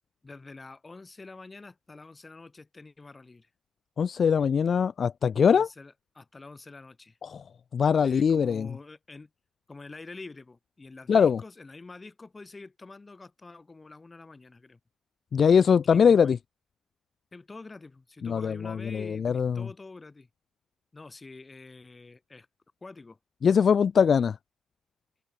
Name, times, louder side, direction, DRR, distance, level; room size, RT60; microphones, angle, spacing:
voice 1, 0.2-3.5 5.5-7.2 8.0-9.3 9.7-14.8 15.8-16.4 17.3-20.3 20.9-22.5 22.8-23.2, left 3 dB, 25° left, 5.5 m, -46 dB
voice 2, 4.0-5.7 7.2-7.4 7.7-8.7 11.1-11.4 15.3-16.4 18.2-19.7 23.4-24.4, left 7 dB, 50° left, 0.4 m, -22 dB
open air
cardioid pair, 90°, 0 cm